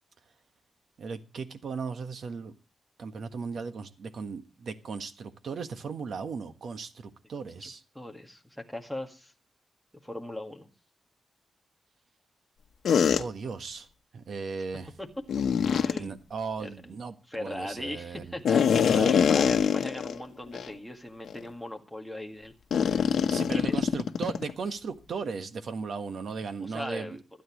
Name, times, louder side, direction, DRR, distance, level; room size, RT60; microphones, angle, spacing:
voice 1, 1.0-2.5 3.0-7.8 13.2-13.9 14.1-14.9 15.9-18.3 18.7-19.2 23.3-27.2, right 5 dB, 65° right, 1.4 m, -37 dB
voice 2, 7.6-9.3 10.0-10.7 15.0-15.1 15.6-16.2 16.6-17.0 17.3-23.2 23.5-23.9 26.6-27.2, left 1 dB, ahead, 1.9 m, -40 dB
sound 1, 12.8-13.2 15.3-16.0 18.4-20.2 20.5-20.7 21.3-21.4 22.7-24.5, left 7 dB, 90° left, 1.0 m, -24 dB
25.5 x 9.3 x 3.1 m
wide cardioid pair, 170°, 0 cm